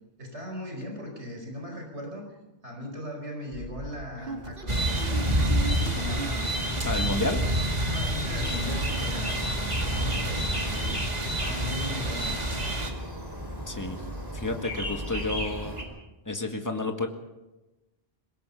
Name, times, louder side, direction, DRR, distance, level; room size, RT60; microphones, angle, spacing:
voice 1, 0.2-2.4 2.6-5.3 5.8-7.2 7.8-9.5 9.8-11.0 11.2-12.3, left 1 dB, 80° right, 2 dB, 5.1 m, -39 dB
sound 1, 3.5-8.0 8.3-9.1 9.5-9.6 9.8-10.0, right 3 dB, 55° right, 2.2 m, -40 dB
sound 2, 4.7-12.9, right 1 dB, 35° right, 2.4 m, -28 dB
voice 2, 6.8-7.4 13.7-14.0 14.3-15.8 16.3-17.1, left 2 dB, 15° left, 4 dB, 1.9 m, -30 dB
sound 3, 8.4-15.8, equal, 20° right, 4.8 m, -35 dB
23.0 x 20.5 x 5.6 m, 1.0 s
omnidirectional pair, 1.1 m